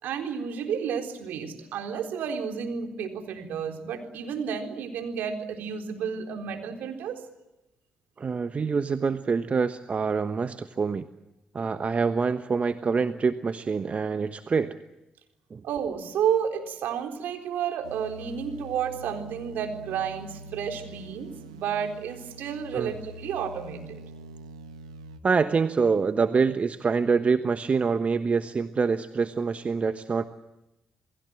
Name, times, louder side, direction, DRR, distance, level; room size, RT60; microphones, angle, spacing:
voice 1, 0.0-7.2 15.6-24.0, right 7 dB, 70° right, 4 dB, 3.9 m, -31 dB
voice 2, 8.2-11.1 11.5-14.8 15.5-15.6 22.7-22.9 25.2-30.2, right 5 dB, 40° right, 10 dB, 1.2 m, -25 dB
sound 1, 17.8-25.2, right 1 dB, 90° right, 1.2 m, -44 dB
28.5 x 20.5 x 7.7 m, 0.95 s
hypercardioid pair, 40°, 3 cm